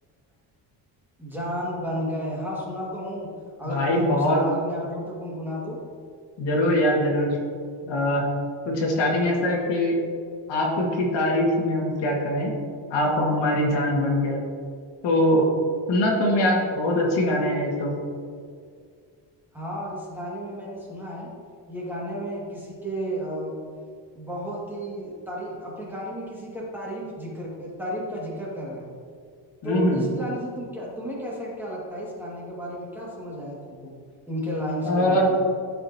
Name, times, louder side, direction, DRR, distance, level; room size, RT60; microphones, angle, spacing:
voice 1, 1.2-3.3 3.6-5.8 7.8-8.0 19.5-21.3 21.7-23.5 24.2-28.9 29.6-33.9 34.3-35.4, equal, 5° right, -6 dB, 1.9 m, -33 dB
voice 2, 3.6-4.4 6.4-7.4 7.9-8.3 8.7-10.0 10.5-12.5 12.9-14.4 15.0-15.5 15.9-17.9 29.6-30.1 34.8-35.3, left 1 dB, 75° left, -2 dB, 1.9 m, -22 dB
12.0 x 5.6 x 2.8 m, 2.1 s
cardioid pair, 155°, 43 cm